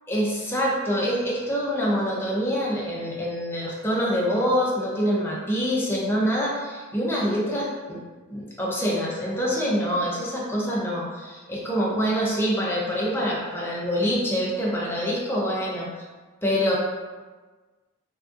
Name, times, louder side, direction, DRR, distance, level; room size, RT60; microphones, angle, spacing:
voice 1, 0.1-8.0 8.3-15.9 16.4-16.8, equal, 10° left, -5 dB, 0.6 m, -25 dB
3.5 x 2.5 x 2.4 m, 1.3 s
head